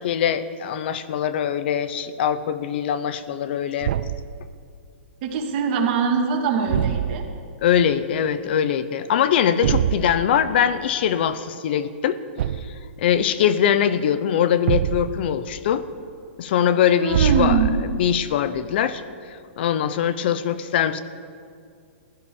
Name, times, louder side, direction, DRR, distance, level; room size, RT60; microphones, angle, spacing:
voice 1, 0.0-3.9 7.6-12.2 13.0-15.8 16.4-17.6 18.0-19.0 19.3-21.0, left 9 dB, 55° left, 14 dB, 0.8 m, -22 dB
Thump thud, 3.8-4.3 6.7-7.4 9.6-10.1 12.4-12.8 14.7-15.3 17.1-18.1, right 10 dB, 60° right, 0.6 m, -23 dB
voice 2, 5.2-7.2 17.0-17.8, right 5 dB, 45° right, 1 dB, 2.5 m, -22 dB
15.5 x 11.5 x 7.1 m, 2.2 s
hypercardioid pair, 150°, 7 cm